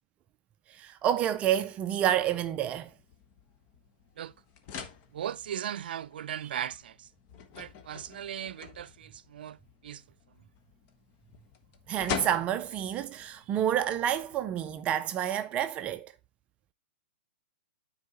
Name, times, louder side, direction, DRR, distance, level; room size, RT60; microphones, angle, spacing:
voice 1, 0.7-2.9 11.9-16.1, right 10 dB, 25° right, 0.4 m, -29 dB
sound 1, 1.9-14.8, left 7 dB, 35° left, 1.1 m, -45 dB
voice 2, 5.1-7.1 7.6-9.6 9.8-10.0, right 10 dB, 70° right, 0.6 m, -37 dB
9.6 x 4.6 x 4.0 m
hypercardioid pair, 145°, 5 cm